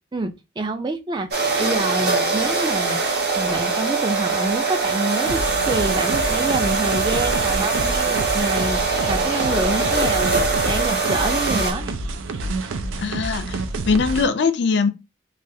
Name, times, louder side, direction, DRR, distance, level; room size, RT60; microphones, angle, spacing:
voice 1, 0.1-5.4 5.6-11.9, right 2 dB, 25° right, 0.3 m, -27 dB
sound 1, 1.3-11.7, right 4 dB, 55° right, 0.9 m, -22 dB
sound 2, 5.2-14.3, right 2 dB, 85° right, 0.4 m, -28 dB
voice 2, 13.0-13.6 13.9-14.9, left 5 dB, 60° left, 0.4 m, -21 dB
3.3 x 2.3 x 2.7 m
head